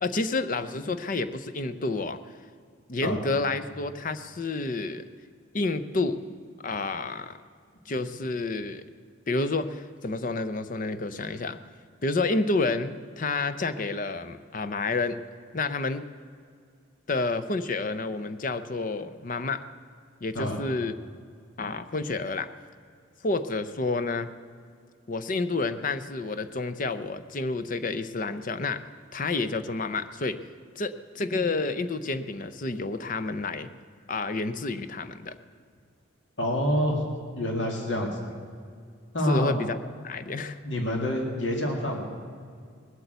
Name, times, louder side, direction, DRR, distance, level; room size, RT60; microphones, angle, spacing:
voice 1, 0.0-2.2 2.9-5.0 5.5-6.2 6.6-7.4 7.9-8.8 9.3-11.6 12.0-15.2 15.5-16.0 17.1-19.6 20.2-20.9 21.6-22.5 23.2-24.3 25.1-28.8 29.1-30.4 30.8-33.7 34.1-35.4 39.2-39.8 40.0-40.6, left 3 dB, 45° left, 12 dB, 0.6 m, -29 dB
voice 2, 36.4-37.0 37.4-38.4 39.1-39.6 40.6-42.0, equal, 65° left, 1 dB, 2.2 m, -27 dB
19.0 x 8.3 x 8.0 m, 2.1 s
head